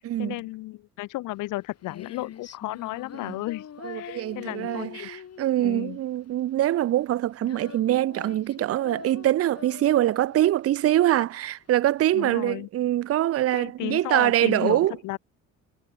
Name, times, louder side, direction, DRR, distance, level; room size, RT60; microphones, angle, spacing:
voice 1, 0.2-3.7 3.9-5.1 5.6-6.0 12.1-12.7 13.5-15.2, left 19 dB, 85° left, 0.6 m, -33 dB
Female singing, 1.3-12.3, left 8 dB, 55° left, 4.2 m, -44 dB
voice 2, 3.8-14.9, right 13 dB, 50° right, 0.5 m, -24 dB
cardioid pair, 90°, 30 cm